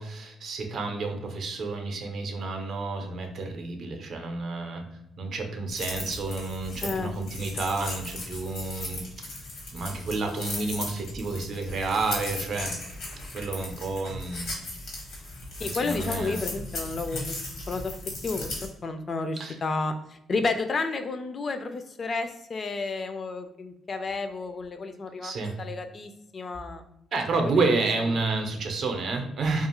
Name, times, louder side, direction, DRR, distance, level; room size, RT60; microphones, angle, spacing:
voice 1, 0.0-4.9 5.2-9.1 9.7-12.8 13.3-14.5 15.6-16.4 19.4-19.6 25.2-25.6 27.1-29.7, right 3 dB, 60° right, 4 dB, 0.5 m, -30 dB
sound 1, 5.7-18.7, left 2 dB, 85° left, 1.1 m, -37 dB
voice 2, 6.8-7.1 15.6-17.4 17.7-18.0 18.2-18.5 18.8-25.3 25.6-26.8, left 3 dB, 40° left, 8 dB, 0.3 m, -31 dB
2.6 x 2.4 x 2.9 m, 0.82 s
cardioid pair, 90°, 0 cm